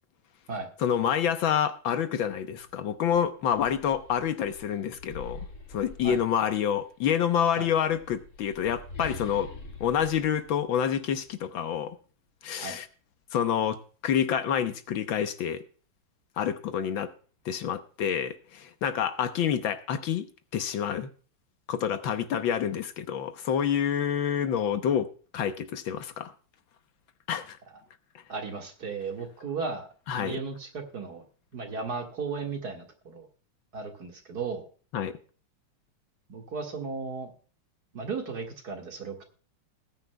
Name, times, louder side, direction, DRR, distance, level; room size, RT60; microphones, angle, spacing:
voice 1, 0.8-9.5 9.8-12.0 12.4-12.9 13.3-15.6 16.4-17.1 17.5-20.3 20.5-21.1 21.7-26.3 27.3-27.6 28.2-28.3 30.1-30.4 34.9-35.1, left 8 dB, 70° left, 1.6 m, -28 dB
sound 1, 2.6-2.7 3.1-6.8 7.7-11.3, left 3 dB, 50° left, 2.9 m, -45 dB
voice 2, 28.3-29.9 30.2-31.2 31.5-33.3 33.7-34.7 36.3-37.3 37.9-39.2, right 4 dB, 50° right, 2.3 m, -35 dB
19.5 x 9.7 x 2.2 m
omnidirectional pair, 2.3 m